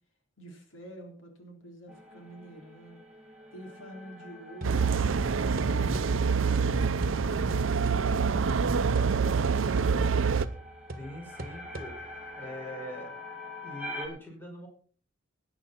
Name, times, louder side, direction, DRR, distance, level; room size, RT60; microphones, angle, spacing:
voice 1, 0.4-3.0 3.5-9.4, equal, 80° left, 3 dB, 3.8 m, -48 dB
bruz treated guitar, 1.9-14.1, left 1 dB, 5° right, 3.5 m, -46 dB
sound 1, 4.6-10.5, right 5 dB, 85° right, 0.6 m, -26 dB
sound 2, 10.4-12.3, right 2 dB, 50° right, 1.5 m, -44 dB
voice 2, 11.0-11.9 12.4-13.1 13.6-14.7, equal, 10° left, 0 dB, 5.3 m, -42 dB
18.5 x 9.9 x 4.3 m, 0.43 s
head